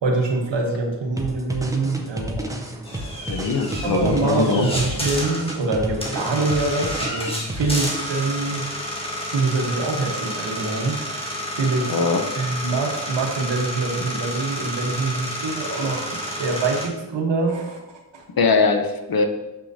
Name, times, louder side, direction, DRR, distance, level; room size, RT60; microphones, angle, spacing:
voice 1, 0.0-2.5 3.8-8.7 9.3-11.0 11.6-12.0 12.3-18.2, right 3 dB, 75° right, 2 dB, 1.2 m, -25 dB
sound 1, 1.2-8.5, right 1 dB, 10° right, 0.6 m, -32 dB
sound 2, 2.9-16.9, equal, 15° left, 1.5 m, -30 dB
voice 2, 3.3-4.7 11.9-12.2 18.4-19.3, left 4 dB, 55° left, 5 dB, 0.8 m, -21 dB
6.6 x 6.0 x 2.7 m, 1.0 s
wide cardioid pair, 95°, 44 cm